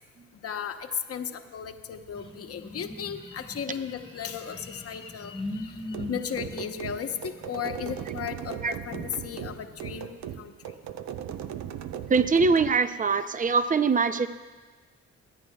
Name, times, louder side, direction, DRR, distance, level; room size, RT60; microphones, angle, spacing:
voice 1, 0.4-5.3 6.1-10.7, left 8 dB, 50° left, 6 dB, 1.0 m, -35 dB
sound 1, 2.1-8.1, left 1 dB, 15° left, 1.3 m, -41 dB
sound 2, 5.9-12.8, right 10 dB, 65° right, 0.6 m, -38 dB
voice 2, 12.1-14.3, right 4 dB, 25° right, 12 dB, 0.6 m, -23 dB
24.0 x 9.3 x 2.3 m, 1.3 s
supercardioid pair, 50°, 30 cm